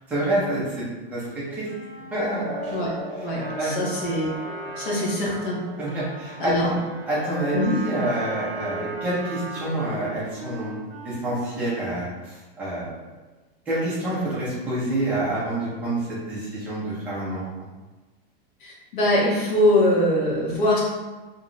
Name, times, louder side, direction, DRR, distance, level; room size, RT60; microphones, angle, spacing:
voice 1, 0.1-0.8 1.1-1.2 1.5-1.7 2.1-2.5 3.4-3.8 4.6-4.7 5.8-6.8 7.1-12.9 13.7-16.0 16.2-17.4, right 1 dB, 5° right, -9 dB, 0.4 m, -27 dB
Wind instrument woodwind instrument, 1.6-5.8 6.5-11.9, right 1 dB, 45° right, 0.8 m, -41 dB
sound 1, 2.2-9.2, equal, 25° left, 0.7 m, -39 dB
voice 2, 3.2-4.3 4.8-5.6 6.4-6.7 7.5-7.8 18.6-20.8, left 1 dB, 55° left, -4 dB, 1.1 m, -22 dB
Trumpet, 3.2-10.1, right 3 dB, 70° right, 0.6 m, -39 dB
2.9 x 2.2 x 3.8 m, 1.2 s
supercardioid pair, 175°, 29 cm